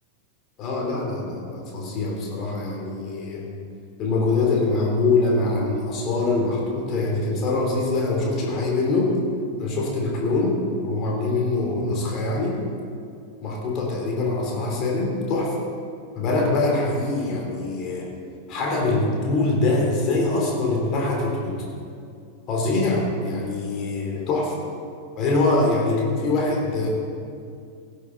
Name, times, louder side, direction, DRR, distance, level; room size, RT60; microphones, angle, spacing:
voice 1, 0.6-3.5 4.0-9.2 9.6-12.6 13.4-15.6 16.1-18.1 18.5-21.6 22.5-24.5 25.2-26.9, left 2 dB, 35° left, -1 dB, 3.3 m, -23 dB
16.5 x 12.0 x 4.0 m, 2.4 s
figure-of-eight pair, 90°, 0 cm